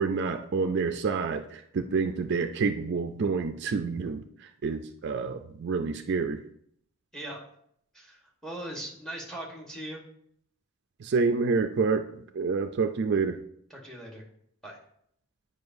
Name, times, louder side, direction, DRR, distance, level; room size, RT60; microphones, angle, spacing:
voice 1, 0.0-4.2 4.6-6.4 11.0-12.0 12.3-13.4, right 4 dB, 50° right, 7 dB, 0.3 m, -28 dB
voice 2, 7.9-10.0 13.7-14.2 14.6-14.8, right 1 dB, 5° left, -1 dB, 1.2 m, -40 dB
9.5 x 5.0 x 2.6 m, 0.69 s
head